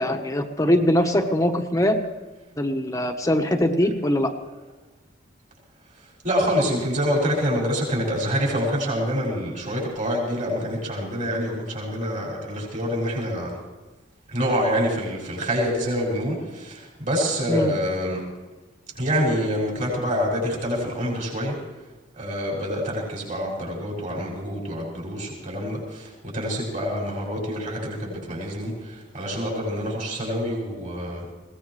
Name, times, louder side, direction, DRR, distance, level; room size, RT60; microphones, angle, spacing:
voice 1, 0.0-2.0 2.6-4.3 17.5-17.7, left 1 dB, 20° left, 4 dB, 1.1 m, -22 dB
voice 2, 5.9-13.5 14.3-18.2 18.9-21.6 22.1-31.3, equal, 45° right, -3 dB, 6.3 m, -26 dB
21.5 x 18.0 x 3.2 m, 1.2 s
head